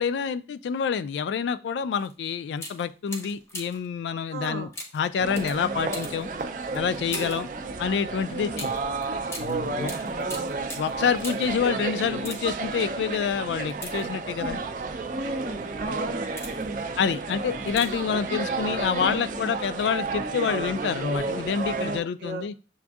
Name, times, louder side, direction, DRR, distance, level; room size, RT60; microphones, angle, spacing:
voice 1, 0.0-6.3 6.7-7.5 7.8-8.7 9.4-9.9 10.7-14.6 17.0-22.5, left 6 dB, 85° left, 0.3 m, -27 dB
sound 1, 2.0-2.1 2.5-3.9 4.7-7.5 8.5-11.6 12.1-12.7 13.7-14.5 15.2-15.4 16.0-16.8 17.7-18.1 18.4-18.5, left 1 dB, 15° left, 0.6 m, -41 dB
voice 2, 4.3-4.7 7.1-7.4 7.6-7.7 8.3-8.6 9.6-10.5 14.4-14.6 15.1-16.9 19.0-19.3 21.7-22.6, right 2 dB, 75° right, 0.7 m, -35 dB
sound 2, 5.2-22.0, right 3 dB, 45° right, 0.4 m, -32 dB
7.0 x 2.6 x 2.3 m
head